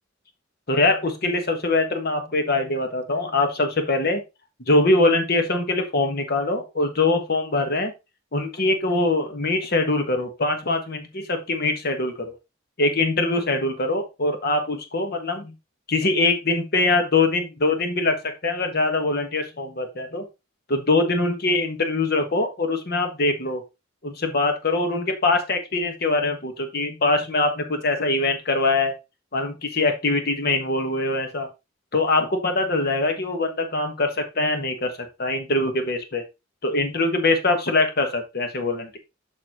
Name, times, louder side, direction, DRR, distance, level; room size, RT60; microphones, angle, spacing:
voice 1, 0.7-4.2 4.7-7.9 8.3-12.3 12.8-15.5 15.9-18.1 18.4-20.3 20.7-23.6 24.0-28.9 29.3-31.5 31.9-34.9 35.2-36.2 36.6-39.0, left 2 dB, 55° left, 6 dB, 1.4 m, -23 dB
6.8 x 6.4 x 3.0 m, 0.25 s
head